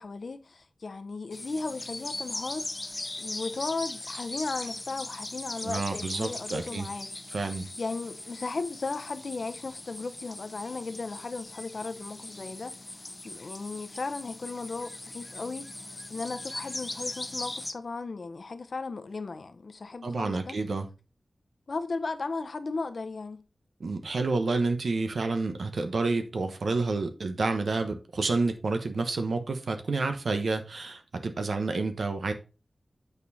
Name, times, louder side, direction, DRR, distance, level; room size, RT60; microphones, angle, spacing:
voice 1, 0.0-2.7 3.2-7.1 7.8-20.6 21.7-23.4, left 3 dB, 65° left, 0.8 m, -36 dB
sound 1, 1.3-17.7, left 2 dB, 30° left, 0.6 m, -40 dB
voice 2, 5.6-6.9 7.3-7.7 20.0-20.9 23.8-32.3, right 3 dB, 90° right, 1.1 m, -29 dB
8.2 x 4.5 x 4.1 m
wide cardioid pair, 90°, 0 cm